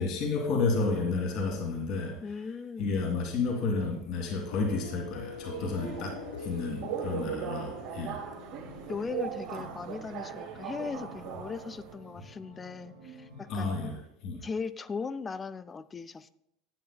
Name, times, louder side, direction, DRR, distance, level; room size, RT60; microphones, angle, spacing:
voice 1, 0.0-2.4 2.8-8.2 13.5-14.4, left 4 dB, 50° left, 1 dB, 2.0 m, -31 dB
voice 2, 2.2-3.0 7.1-7.5 8.9-13.8 14.4-16.3, left 5 dB, 25° left, 14 dB, 0.4 m, -38 dB
sound 1, 4.5-9.9, left 7 dB, 70° left, 0.5 m, -45 dB
Subway metro underground, 5.1-11.9, right 8 dB, 55° right, 1.0 m, -39 dB
sound 2, 8.5-14.0, right 1 dB, 70° right, 2.3 m, -50 dB
11.0 x 9.3 x 2.2 m, 0.79 s
figure-of-eight pair, 70°, 0 cm